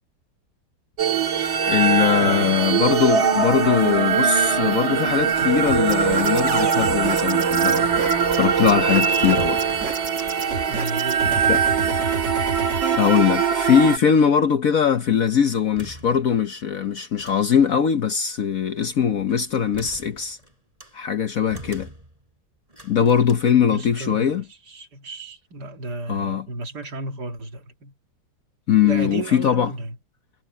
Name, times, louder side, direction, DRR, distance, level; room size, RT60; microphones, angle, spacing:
sound 1, 1.0-14.0, right 6 dB, 90° right, 2.8 m, -21 dB
voice 1, 1.7-7.9 8.3-9.6 11.5-11.9 13.0-20.4 20.9-21.9 22.8-24.4 26.1-26.5 28.7-29.7, left 8 dB, 55° left, 1.2 m, -21 dB
voice 2, 2.2-2.6 5.4-5.6 10.7-11.5 23.7-27.9 28.8-30.0, right 2 dB, 60° right, 2.6 m, -33 dB
sound 2, 5.7-13.0, right 3 dB, 40° right, 2.0 m, -31 dB
sound 3, 9.1-10.5 10.8-12.0 12.3-12.4 13.0-13.7 15.5-16.6 17.1-17.7 18.9-21.0 21.5-22.3 22.7-23.3, right 1 dB, 15° right, 7.3 m, -45 dB
omnidirectional pair, 2.1 m